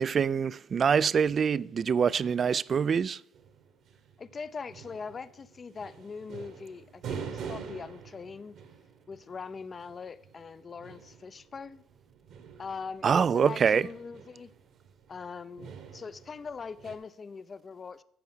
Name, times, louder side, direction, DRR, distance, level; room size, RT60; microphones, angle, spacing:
voice 1, 0.0-3.2 13.0-13.9, right 6 dB, 40° right, 0.3 m, -25 dB
sound 1, 3.3-17.0, right 6 dB, 65° right, 1.4 m, -46 dB
voice 2, 4.2-8.5 9.1-11.8 12.6-14.5 15.1-18.0, left 5 dB, 35° left, 0.5 m, -41 dB
13.5 x 4.6 x 6.2 m
supercardioid pair, 75°, 0 cm